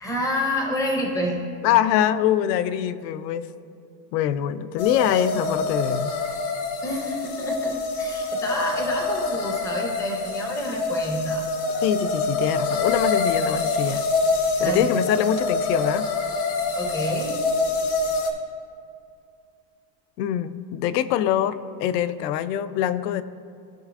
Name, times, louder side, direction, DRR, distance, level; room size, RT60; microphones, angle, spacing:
voice 1, 0.0-1.4 6.8-11.4 14.6-14.8 16.8-17.4, equal, 5° left, 0 dB, 0.4 m, -28 dB
voice 2, 1.6-3.5 4.1-6.1 11.8-14.0 14.6-16.1 20.2-23.2, left 11 dB, 80° left, 14 dB, 0.6 m, -24 dB
sound 1, 4.8-18.3, left 3 dB, 65° left, 1.2 m, -26 dB
15.5 x 5.4 x 2.4 m, 2.4 s
supercardioid pair, 170°, 48 cm